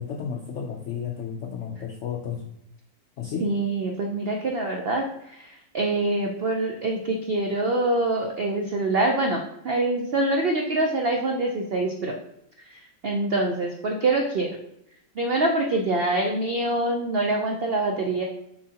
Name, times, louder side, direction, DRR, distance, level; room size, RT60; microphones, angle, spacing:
voice 1, 0.0-2.5 3.2-3.5, left 7 dB, 75° left, 2 dB, 0.6 m, -32 dB
voice 2, 3.4-12.2 12.6-14.5 15.2-18.2, right 2 dB, 85° right, 2 dB, 0.5 m, -25 dB
7.2 x 4.8 x 2.9 m, 0.79 s
omnidirectional pair, 1.9 m